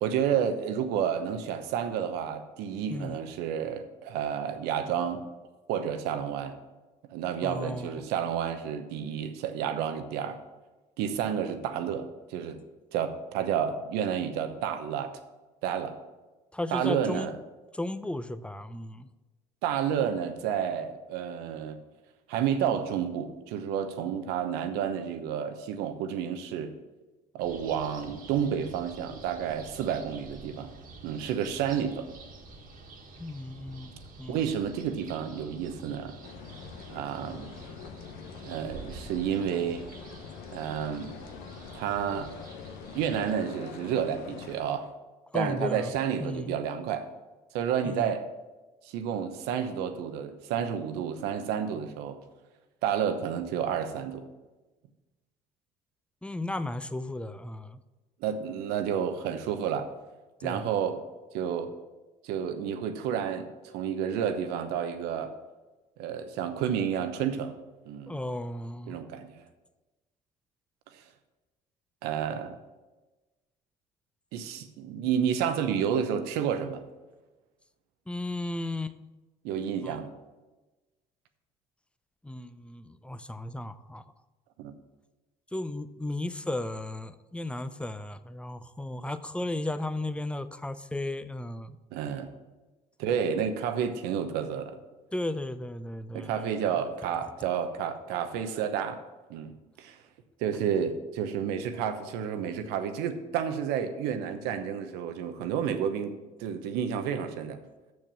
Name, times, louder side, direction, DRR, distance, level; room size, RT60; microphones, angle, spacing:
voice 1, 0.0-5.3 5.7-6.6 7.1-10.4 11.0-12.6 12.9-15.2 15.6-16.0 16.7-17.4 19.6-21.8 22.3-26.7 27.3-30.7 31.0-32.1 34.3-36.2 36.9-37.5 38.4-39.9 40.5-41.1 41.7-42.3 42.9-44.9 45.3-47.1 47.5-48.3 48.8-52.2 52.8-54.3 58.2-59.9 60.4-61.0 61.3-61.7 62.2-65.3 66.0-67.6 67.9-68.2 68.9-69.4 70.9-71.0 72.0-72.6 74.3-76.8 79.4-80.1 84.6-84.7 91.9-92.3 93.0-94.8 96.1-99.0 99.3-99.5 99.8-100.0 100.4-106.1 106.4-107.6, right 8 dB, 80° right, 9 dB, 0.9 m, -30 dB
voice 2, 2.9-3.2 7.4-8.0 16.5-17.3 17.7-19.1 33.2-33.9 34.2-34.5 45.3-45.9 46.2-46.6 47.8-48.1 56.2-57.8 60.4-60.6 68.1-69.0 78.1-79.0 79.8-80.0 82.2-84.0 85.5-91.8 95.1-96.5, left 1 dB, 5° left, 12 dB, 0.5 m, -35 dB
sound 1, 27.4-43.3, right 3 dB, 60° right, 1.7 m, -48 dB
sound 2, 36.2-44.6, left 7 dB, 80° left, 0.7 m, -45 dB
6.6 x 6.3 x 7.3 m, 1.2 s
supercardioid pair, 70°, 16 cm